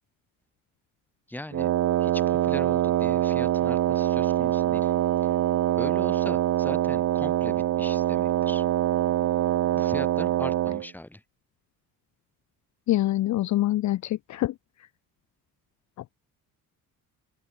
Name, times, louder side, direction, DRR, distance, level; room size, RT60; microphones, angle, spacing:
voice 1, 1.3-1.7 2.0-4.9 5.2-5.3 5.8-8.6 9.7-11.2, left 1 dB, 5° left, 4.6 m, -40 dB
Wind instrument woodwind instrument, 1.5-10.9, right 13 dB, 50° right, 0.7 m, -24 dB
voice 2, 12.9-14.5, left 15 dB, 50° left, 0.6 m, -25 dB
open air
cardioid pair, 155°, 36 cm